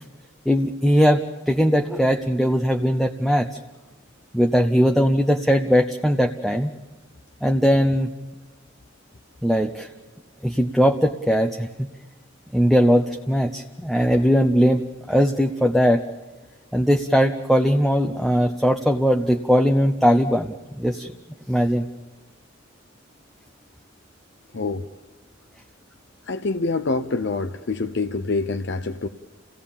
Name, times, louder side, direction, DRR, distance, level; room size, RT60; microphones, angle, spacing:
voice 1, 0.5-3.6 4.3-6.7 7.4-8.1 9.4-9.9 10.4-11.9 12.5-16.0 16.7-21.1 21.5-21.9, equal, ahead, 4 dB, 0.7 m, -20 dB
voice 2, 24.5-24.9 26.3-29.1, left 3 dB, 60° left, 9 dB, 0.7 m, -26 dB
29.5 x 17.5 x 7.2 m, 1.2 s
head